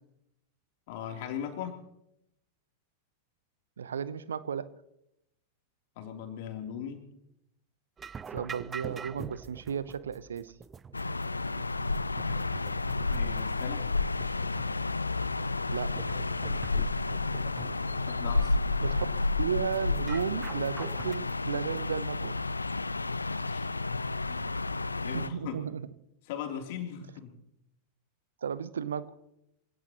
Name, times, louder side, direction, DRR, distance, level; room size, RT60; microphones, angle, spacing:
voice 1, 0.9-1.8 5.9-7.0 13.1-13.9 18.0-18.6 23.5-23.8 24.3-24.5 25.0-25.6 26.3-27.4, left 8 dB, 50° left, 3 dB, 3.2 m, -39 dB
voice 2, 3.8-4.6 8.3-10.5 15.7-15.9 18.8-19.1 19.4-22.4 25.1-25.8 28.4-29.0, right 7 dB, 70° right, 16 dB, 0.9 m, -34 dB
sound 1, 8.0-21.2, right 6 dB, 20° right, 0.6 m, -46 dB
sound 2, 10.9-25.3, left 3 dB, 80° left, 0.5 m, -31 dB
26.5 x 17.5 x 3.0 m, 0.81 s
figure-of-eight pair, 90°, 0 cm